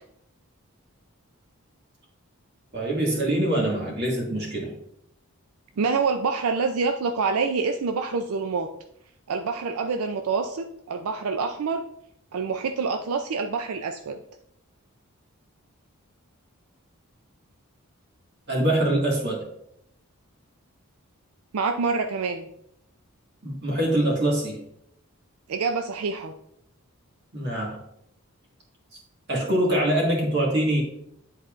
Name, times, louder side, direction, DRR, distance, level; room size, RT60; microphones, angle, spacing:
voice 1, 2.7-4.7 18.5-19.5 23.4-24.6 27.3-27.8 29.3-30.8, right 1 dB, 50° right, -2 dB, 1.8 m, -24 dB
voice 2, 5.8-8.7 9.3-11.8 12.3-14.2 21.5-22.5 25.5-26.3, right 4 dB, 90° right, 6 dB, 0.4 m, -26 dB
10.0 x 4.2 x 2.5 m, 0.74 s
head